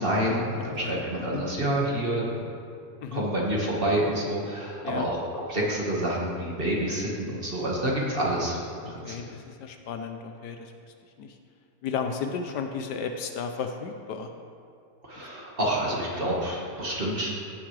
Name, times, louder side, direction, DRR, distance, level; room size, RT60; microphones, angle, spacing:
voice 1, 0.0-2.4 3.1-8.6 8.8-9.2 15.0-17.3, right 1 dB, 35° right, -4 dB, 1.6 m, -28 dB
voice 2, 0.6-1.0 1.3-1.4 3.0-3.2 4.8-5.1 9.0-11.4 11.8-14.3, left 6 dB, 75° left, 6 dB, 1.2 m, -34 dB
15.5 x 7.2 x 3.3 m, 2.4 s
omnidirectional pair, 1.9 m